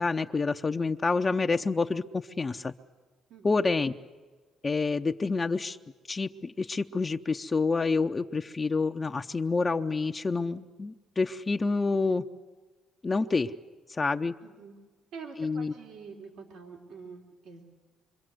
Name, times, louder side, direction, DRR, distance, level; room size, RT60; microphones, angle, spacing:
voice 1, 0.0-2.7 3.4-3.9 4.6-5.8 6.1-12.2 13.0-13.5 13.9-14.3 15.4-15.7, left 4 dB, 30° left, 5 dB, 0.7 m, -28 dB
voice 2, 14.4-14.8 15.1-17.6, right 5 dB, 80° right, 1 dB, 3.6 m, -46 dB
26.0 x 24.0 x 7.9 m, 1.4 s
supercardioid pair, 70°, 0 cm